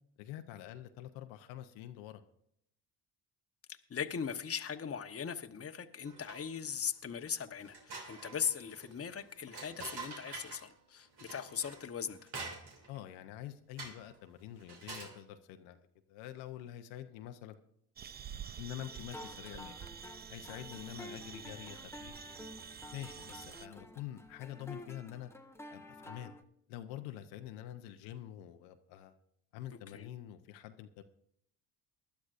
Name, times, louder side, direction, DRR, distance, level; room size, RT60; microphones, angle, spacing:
voice 1, 0.2-2.2 12.9-17.6 18.6-19.8 20.3-22.1 22.9-25.3 25.7-26.3 26.7-29.1 29.5-31.0, left 12 dB, 85° left, 8 dB, 0.9 m, -46 dB
voice 2, 3.9-12.3 29.9-30.1, left 7 dB, 30° left, 7 dB, 1.0 m, -39 dB
sound 1, 6.0-6.7 7.1-7.2 7.6-10.7 11.2-13.0 13.8-14.1 14.6-15.2, right 3 dB, 55° right, 2.8 m, -47 dB
sound 2, 18.0-23.7, right 8 dB, 25° right, 0.3 m, -48 dB
sound 3, 18.8-26.4, left 1 dB, 5° left, 1.0 m, -51 dB
20.0 x 11.5 x 2.5 m, 0.72 s
supercardioid pair, 70°, 46 cm